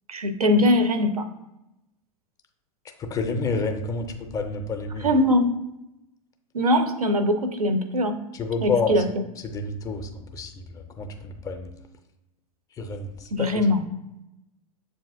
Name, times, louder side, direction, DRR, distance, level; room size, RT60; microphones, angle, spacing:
voice 1, 0.1-1.3 5.0-5.5 6.5-8.2 8.6-9.2 13.3-13.9, left 1 dB, 75° right, 9 dB, 0.5 m, -21 dB
voice 2, 3.0-5.1 8.3-8.9 9.5-10.7 11.0-11.7 12.8-13.6, left 4 dB, 20° left, 5 dB, 0.4 m, -29 dB
6.9 x 2.5 x 2.4 m, 0.89 s
figure-of-eight pair, 90°, 19 cm